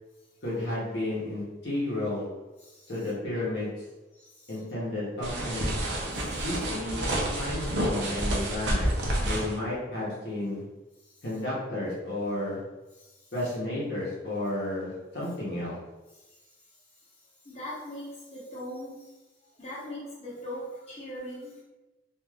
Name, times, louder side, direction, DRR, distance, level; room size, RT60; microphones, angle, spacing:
voice 1, 0.4-2.3 2.9-3.7 4.5-5.8 6.4-10.6 11.2-12.6 13.3-15.7, left 1 dB, 60° left, -7 dB, 0.9 m, -32 dB
voice 2, 4.1-4.6 6.1-6.4 11.1-11.2 13.0-13.3 16.3-16.4 17.4-19.1 19.6-21.6, left 1 dB, 35° left, -9 dB, 0.9 m, -41 dB
sound 1, 5.2-9.5, right 1 dB, 65° right, 0.6 m, -29 dB
3.2 x 2.5 x 2.4 m, 1.1 s
head